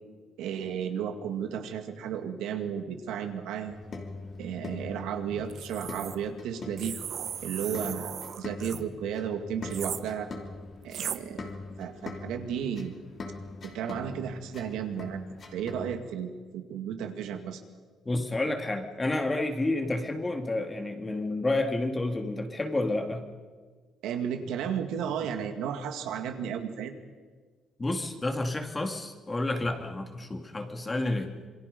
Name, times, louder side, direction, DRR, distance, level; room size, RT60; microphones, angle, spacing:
voice 1, 0.4-3.8 4.4-7.0 7.4-10.3 10.8-11.5 11.8-12.9 13.6-15.2 15.5-17.6 24.0-26.9, right 8 dB, 90° right, 6 dB, 2.1 m, -33 dB
sound 1, 3.6-16.0, left 3 dB, 40° left, 2.9 m, -43 dB
sound 2, 5.5-6.2 6.8-8.8 9.7-10.0 10.9-11.2, right 9 dB, 55° right, 1.0 m, -37 dB
voice 2, 18.1-23.2 27.8-31.3, left 2 dB, 20° left, 5 dB, 2.2 m, -30 dB
27.0 x 22.0 x 5.3 m, 1.5 s
cardioid pair, 125°, 0 cm